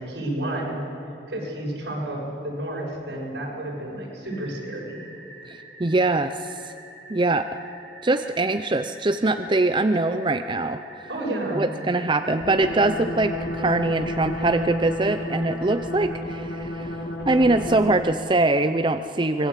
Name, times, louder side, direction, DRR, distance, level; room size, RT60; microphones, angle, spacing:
voice 1, 0.0-5.0 11.1-11.6, right 1 dB, 80° right, -3 dB, 7.5 m, -31 dB
sound 1, 4.2-15.8, right 1 dB, 5° right, 6.5 m, -46 dB
voice 2, 5.5-6.7 7.1-7.5 8.0-10.8 11.5-17.0 17.3-19.5, right 2 dB, 30° right, 9 dB, 0.6 m, -23 dB
sound 2, 12.4-18.2, left 1 dB, 70° left, 4.1 m, -31 dB
25.0 x 20.5 x 8.4 m, 2.9 s
head